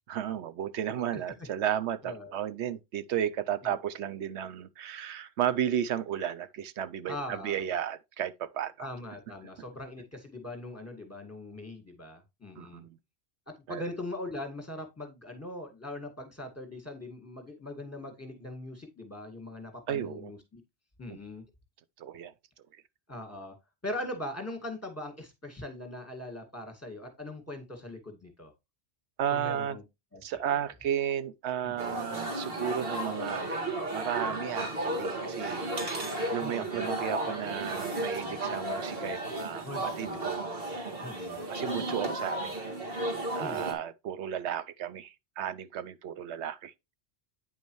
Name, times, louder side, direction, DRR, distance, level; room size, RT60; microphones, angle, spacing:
voice 1, 0.1-8.9 12.6-13.0 13.7-13.8 19.9-20.3 21.1-21.2 22.0-22.3 29.2-29.8 30.2-40.5 41.5-42.6 43.3-46.7, right 9 dB, 85° right, 0.9 m, -34 dB
voice 2, 2.0-2.3 3.6-3.7 7.1-7.6 8.8-12.8 13.5-20.6 21.0-21.4 23.1-23.6 23.8-28.5 29.3-29.8 30.1-30.2 30.6-30.7 31.6-32.0 36.4-36.8 39.6-40.2 41.0-41.4 43.4-43.7, left 1 dB, 15° left, 1.9 m, -41 dB
sound 1, 31.8-43.7, right 2 dB, 60° right, 2.1 m, -34 dB
9.1 x 5.2 x 3.1 m
omnidirectional pair, 1.1 m